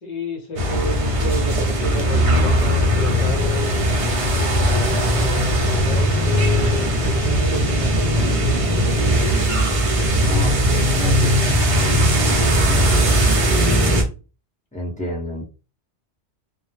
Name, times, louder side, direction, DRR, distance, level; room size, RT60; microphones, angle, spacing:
voice 1, 0.0-8.9 10.9-11.8 12.4-13.3, left 1 dB, 45° left, 0.7 m, -31 dB
sound 1, 0.6-14.0, equal, 40° right, 0.5 m, -18 dB
voice 2, 10.2-11.3 12.7-13.0 14.7-15.5, left 1 dB, 10° left, 0.7 m, -29 dB
2.2 x 2.0 x 3.1 m
omnidirectional pair, 1.1 m